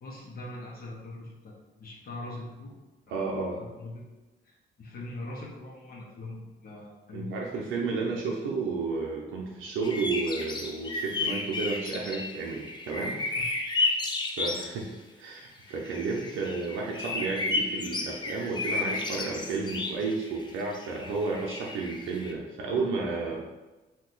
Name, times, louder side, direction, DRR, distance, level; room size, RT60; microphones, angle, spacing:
voice 1, 0.0-1.5 1.8-2.8 3.1-4.1 4.4-7.3 13.3-13.5, left 2 dB, 50° left, -3 dB, 0.8 m, -42 dB
voice 2, 3.1-3.6 7.1-13.2 14.4-14.9 15.2-23.4, right 4 dB, 90° right, -2 dB, 0.5 m, -32 dB
sound 1, 9.8-14.7 15.7-22.3, left 3 dB, 25° left, 0.4 m, -33 dB
2.7 x 2.2 x 3.8 m, 1.1 s
cardioid pair, 90°, 20 cm